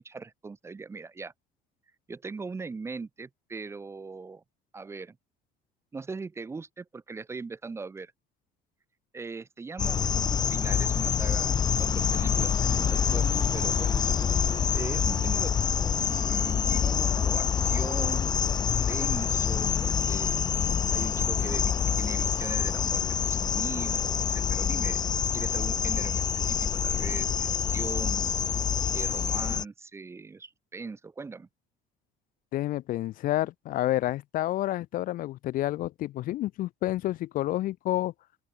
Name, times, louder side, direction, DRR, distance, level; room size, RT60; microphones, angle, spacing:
voice 1, 0.0-1.3 2.1-4.4 4.7-5.2 5.9-8.1 9.1-14.0 14.7-18.6 18.9-20.4 20.9-25.0 25.3-28.3 28.9-31.5, right 4 dB, 15° right, 1.5 m, -40 dB
sound 1, 9.8-29.6, left 7 dB, 25° left, 0.6 m, -26 dB
Wind instrument woodwind instrument, 10.7-18.1, right 9 dB, 35° right, 2.1 m, -47 dB
voice 2, 32.5-38.1, left 15 dB, 55° left, 1.1 m, -29 dB
open air
cardioid pair, 160°, 17 cm